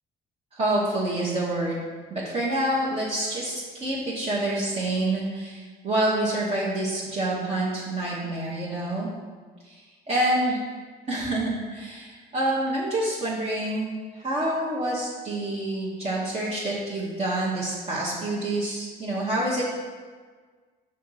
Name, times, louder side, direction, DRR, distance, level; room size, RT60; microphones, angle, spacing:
voice 1, 0.5-1.8 2.1-9.1 9.6-10.6 11.1-19.8, right 1 dB, 40° right, -7 dB, 1.3 m, -27 dB
5.5 x 3.9 x 5.7 m, 1.5 s
cardioid pair, 110°, 17 cm